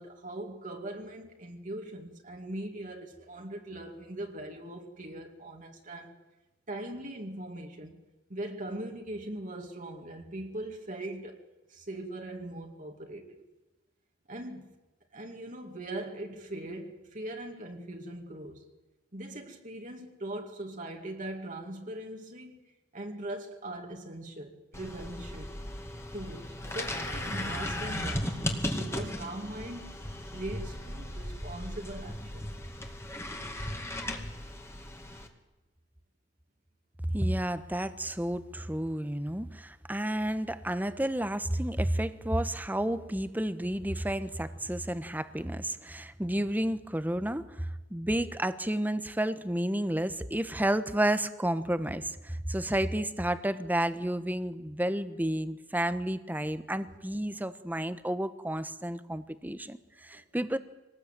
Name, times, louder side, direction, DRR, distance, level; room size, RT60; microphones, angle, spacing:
voice 1, 0.0-6.2 6.7-8.0 8.3-13.4 14.3-14.7 15.1-18.6 19.1-22.6 22.9-25.6 26.1-32.7 60.1-60.2, right 1 dB, 45° right, 2.3 m, -41 dB
sound 1, 24.7-35.3, left 1 dB, 15° left, 2.3 m, -36 dB
voice 2, 37.1-60.6, right 1 dB, 10° right, 1.1 m, -31 dB
25.0 x 19.5 x 9.1 m
head